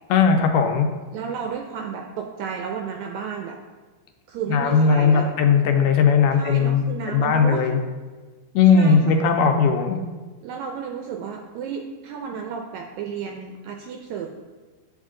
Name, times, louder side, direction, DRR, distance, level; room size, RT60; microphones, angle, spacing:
voice 1, 0.1-0.9 4.5-7.8 8.6-10.0, left 5 dB, 80° left, 4 dB, 2.1 m, -18 dB
voice 2, 1.1-3.6 4.3-5.4 6.3-7.7 8.7-9.3 10.4-14.3, right 7 dB, 80° right, 2 dB, 1.7 m, -32 dB
9.1 x 3.7 x 3.7 m, 1.3 s
omnidirectional pair, 3.7 m